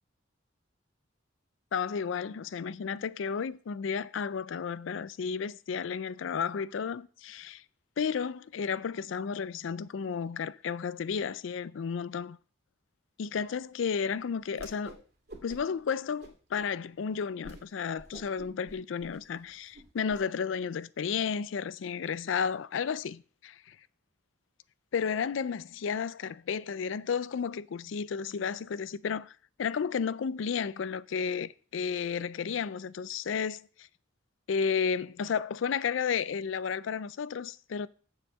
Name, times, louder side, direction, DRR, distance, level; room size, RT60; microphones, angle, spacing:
voice 1, 1.7-7.6 8.0-12.4 13.2-15.0 15.4-23.8 24.9-29.3 29.6-33.9 34.5-37.9, left 6 dB, 75° left, 0.4 m, -32 dB
Whoosh swoosh swish, 14.5-15.0 15.3-15.8 16.2-16.7 17.1-17.2 17.4-17.6 17.9-20.2, right 1 dB, 55° right, 2.3 m, -48 dB
7.0 x 5.6 x 7.4 m
head